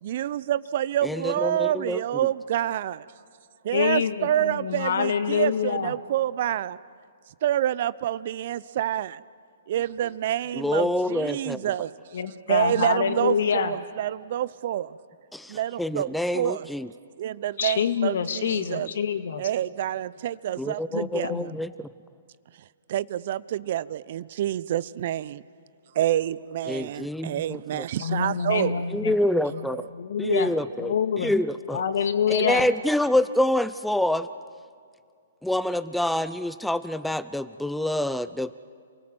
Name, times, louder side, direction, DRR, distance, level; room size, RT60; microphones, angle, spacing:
voice 1, 0.0-3.0 3.6-6.8 7.4-9.2 9.7-11.9 12.5-15.0 15.5-16.7 17.2-18.9 19.4-21.5 22.9-25.4 25.9-28.8 29.7-29.8, right 11 dB, 50° right, 19 dB, 0.7 m, -27 dB
voice 2, 1.0-2.0 10.5-11.6 15.3-16.9 20.6-21.9 26.7-27.8 28.9-29.8 30.2-31.8 32.3-34.3 35.4-38.6, left 1 dB, ahead, 13 dB, 0.6 m, -26 dB
voice 3, 3.7-5.9 12.1-13.7 17.6-19.4 20.9-21.6 28.0-29.2 29.5-29.7 29.9-30.5 30.8-31.3 31.7-32.7, left 7 dB, 65° left, 10 dB, 1.8 m, -26 dB
28.5 x 19.0 x 7.8 m, 2.2 s
hypercardioid pair, 125°, 0 cm